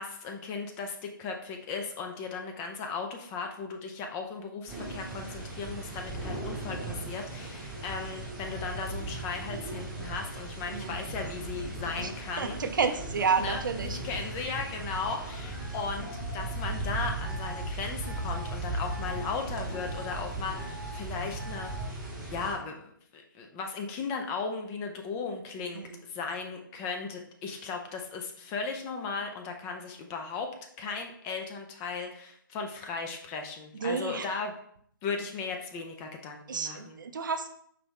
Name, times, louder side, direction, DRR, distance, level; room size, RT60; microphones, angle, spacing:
voice 1, 0.0-12.6 13.4-21.7 22.3-30.5 30.8-34.5 35.0-37.0, left 5 dB, 15° left, 4 dB, 0.4 m, -36 dB
sound 1, 4.7-22.5, right 2 dB, 5° right, 0.9 m, -37 dB
sound 2, 7.4-10.3 10.9-13.8 15.1-16.7 17.2-17.7 18.0-18.6 18.9-19.3 19.7-20.2 20.5-21.0 21.4-21.9, left 1 dB, 55° left, 1.9 m, -48 dB
voice 2, 12.4-14.0 25.8-26.0 33.8-34.3 36.5-37.5, right 5 dB, 65° right, 7 dB, 0.6 m, -30 dB
4.9 x 3.0 x 3.5 m, 0.66 s
figure-of-eight pair, 140°, 12 cm